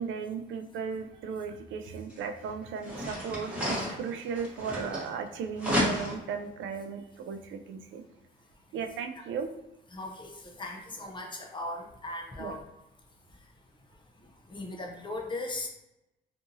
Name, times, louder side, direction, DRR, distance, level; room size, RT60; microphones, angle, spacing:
voice 1, 0.0-8.0 8.7-9.5 12.4-12.5, right 6 dB, 70° right, 6 dB, 0.4 m, -36 dB
sound 1, 2.1-2.2 2.8-5.3 5.6-6.3, equal, 5° right, 1.0 m, -32 dB
voice 2, 9.9-12.6 14.5-15.7, left 2 dB, 25° left, 1 dB, 0.6 m, -38 dB
2.7 x 2.6 x 2.6 m, 0.89 s
cardioid pair, 85°, 21 cm